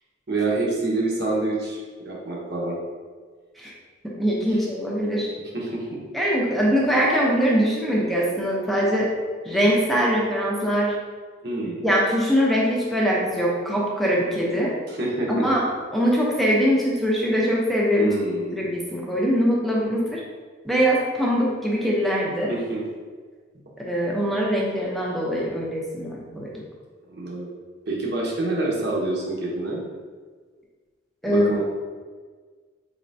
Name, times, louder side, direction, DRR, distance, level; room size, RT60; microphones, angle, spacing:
voice 1, 0.3-2.8 5.5-6.0 11.4-11.9 14.9-15.5 18.0-18.6 22.5-22.8 27.1-27.5 27.9-29.8 31.3-31.6, right 2 dB, 55° right, -4 dB, 0.8 m, -27 dB
voice 2, 4.0-5.3 6.1-9.1 9.4-10.9 11.8-14.7 15.3-15.6 15.9-18.1 18.5-20.2 20.6-22.5 23.8-26.5 31.2-31.5, equal, ahead, -4 dB, 0.6 m, -22 dB
4.2 x 3.2 x 2.6 m, 1.6 s
head